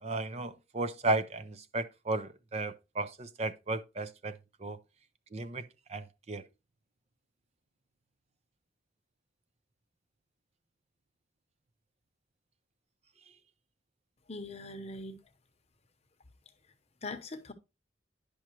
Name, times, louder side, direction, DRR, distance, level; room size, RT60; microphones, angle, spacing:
voice 1, 0.0-4.8 5.3-5.6 5.9-6.4, right 2 dB, 35° right, 0.5 m, -34 dB
voice 2, 14.3-15.2 17.0-17.5, left 2 dB, 35° left, 0.9 m, -41 dB
10.0 x 5.9 x 2.9 m
head